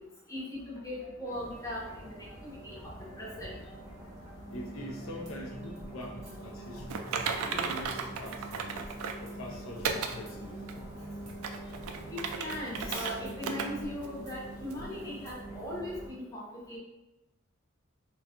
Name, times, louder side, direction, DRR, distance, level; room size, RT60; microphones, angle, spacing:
voice 1, 0.3-3.7 6.1-6.2 9.8-9.9 12.1-16.8, left 1 dB, 15° left, -5 dB, 0.7 m, -39 dB
sound 1, 0.5-15.5, equal, 35° right, 0.7 m, -51 dB
sound 2, 1.3-16.1, right 1 dB, 15° right, 1.0 m, -45 dB
voice 2, 4.5-7.1 7.4-8.8 9.2-10.7, left 1 dB, 65° left, 1 dB, 0.4 m, -44 dB
Typing, 6.9-9.3 9.8-10.2 10.7-10.8 11.3-13.1 13.4-13.7 14.0-14.1 14.7-14.8, right 6 dB, 85° right, 0.3 m, -34 dB
3.6 x 2.2 x 2.7 m, 0.96 s
head